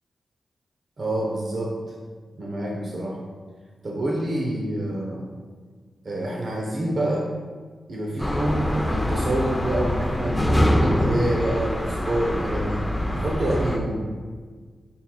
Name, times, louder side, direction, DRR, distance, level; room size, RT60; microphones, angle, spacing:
voice 1, 1.0-1.8 2.4-3.2 3.8-5.3 6.0-7.3 7.9-14.1, right 1 dB, 55° right, -2 dB, 0.9 m, -27 dB
sound 1, 8.2-13.8, equal, 5° left, 0.6 m, -24 dB
7.1 x 5.7 x 2.3 m, 1.5 s
cardioid pair, 70°, 0 cm